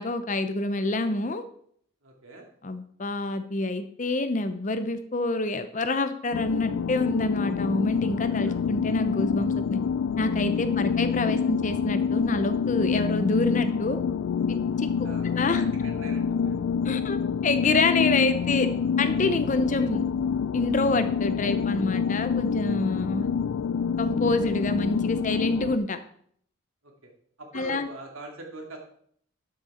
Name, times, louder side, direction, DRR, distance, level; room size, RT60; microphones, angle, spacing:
voice 1, 0.0-1.4 2.6-9.8 10.2-14.0 14.5-15.6 16.8-18.7 19.0-20.0 20.5-23.3 24.0-26.0 27.5-27.9, left 2 dB, 35° left, 10 dB, 0.7 m, -27 dB
voice 2, 2.0-2.5 8.3-8.6 10.6-11.5 15.0-16.6 19.5-19.9 23.0-23.3 26.8-27.1 27.4-28.8, right 2 dB, 75° right, 1 dB, 2.5 m, -44 dB
sound 1, 6.3-25.8, left 6 dB, 75° left, 0.3 m, -27 dB
12.5 x 6.4 x 4.3 m, 0.63 s
head